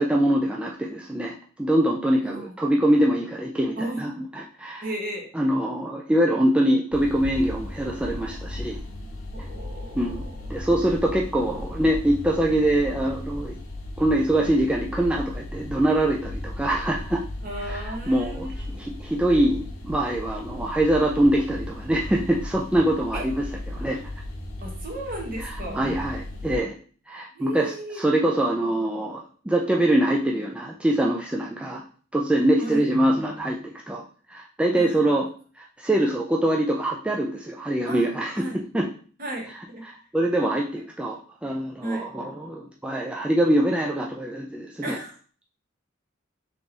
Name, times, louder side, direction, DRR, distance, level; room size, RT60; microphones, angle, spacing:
voice 1, 0.0-4.9 5.3-8.8 10.0-10.2 10.5-13.6 14.0-17.2 17.7-23.5 23.7-24.1 25.4-26.7 27.1-31.8 32.1-33.6 33.9-34.0 34.3-35.3 35.6-38.5 38.7-38.9 40.1-45.0, right 1 dB, 5° right, -1 dB, 0.3 m, -24 dB
voice 2, 4.8-5.3 9.3-10.5 17.4-18.7 23.1-23.3 24.6-25.8 27.3-28.0 32.6-32.8 34.8-35.0 37.8-38.1 38.3-38.6 39.2-39.8 41.8-42.1 44.8-45.1, right 1 dB, 45° right, 1 dB, 1.2 m, -34 dB
sound 1, 6.9-26.6, left 1 dB, 80° left, 0.9 m, -36 dB
3.7 x 3.0 x 3.8 m, 0.42 s
head